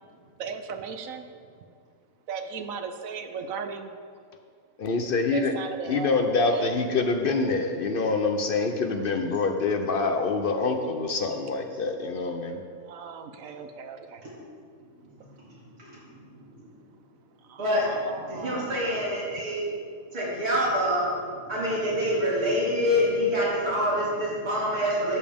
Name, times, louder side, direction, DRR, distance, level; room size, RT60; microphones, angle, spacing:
voice 1, 0.4-1.3 2.3-3.9 5.3-6.7 12.9-14.2 17.5-18.8, right 6 dB, 70° right, 7 dB, 1.0 m, -36 dB
voice 2, 4.8-5.5 5.8-12.6, left 3 dB, 60° left, 5 dB, 0.5 m, -26 dB
voice 3, 14.8-16.7 17.6-19.6 20.1-25.2, equal, 85° right, -8 dB, 3.4 m, -27 dB
12.5 x 7.2 x 3.5 m, 2.1 s
omnidirectional pair, 1.6 m